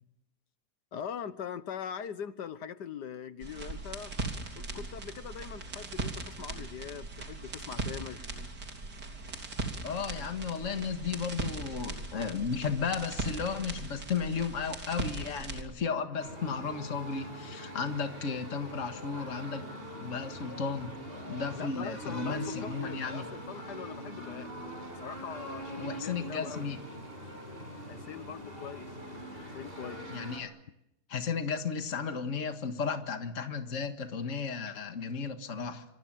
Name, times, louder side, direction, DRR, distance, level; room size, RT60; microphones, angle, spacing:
voice 1, 0.9-4.1 4.6-8.3 21.5-24.5 25.0-26.7 27.9-28.9 29.5-30.0, left 7 dB, 85° left, 13 dB, 1.8 m, -42 dB
sound 1, 3.4-15.6, right 3 dB, 80° right, 4.0 m, -39 dB
voice 2, 9.8-19.7 20.0-20.9 21.3-23.3 25.8-26.8 30.1-30.5 31.1-35.8, left 5 dB, 50° left, 6 dB, 2.0 m, -34 dB
sound 2, 16.2-30.4, equal, 35° right, 7.0 m, -43 dB
26.0 x 25.5 x 7.5 m, 0.82 s
omnidirectional pair, 1.7 m